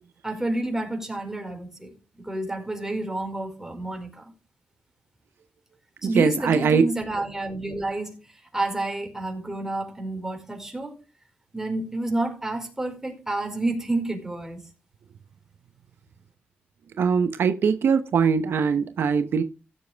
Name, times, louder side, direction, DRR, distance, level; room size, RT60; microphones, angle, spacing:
voice 1, 0.2-4.2 6.0-8.2 8.5-10.9 11.5-14.6, right 2 dB, 10° right, 4.8 m, -29 dB
voice 2, 6.1-6.8 17.0-19.4, right 6 dB, 75° right, 0.8 m, -21 dB
15.5 x 7.5 x 3.4 m
cardioid pair, 70°, 4 cm